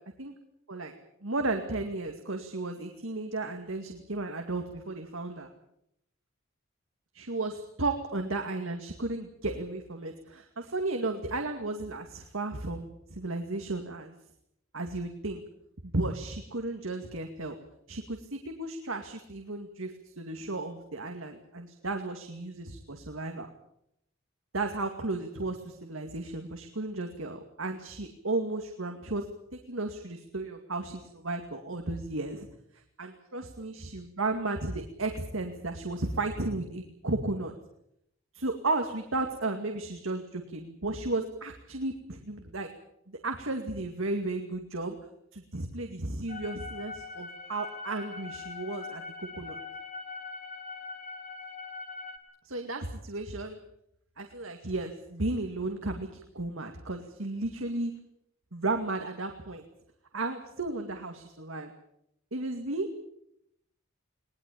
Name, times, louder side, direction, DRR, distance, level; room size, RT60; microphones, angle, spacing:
voice 1, 1.2-5.5 7.1-14.1 14.7-15.4 15.8-17.6 17.9-23.5 24.5-29.3 29.7-32.5 32.7-37.5 38.3-42.7 43.1-45.0 45.3-49.6 52.4-53.6 54.2-57.9 58.5-59.6 60.1-61.7 62.3-63.1, right 2 dB, 80° right, 5 dB, 2.4 m, -34 dB
sound 1, 46.3-52.2, left 4 dB, 35° left, 2.7 m, -42 dB
21.5 x 20.0 x 8.6 m, 0.75 s
head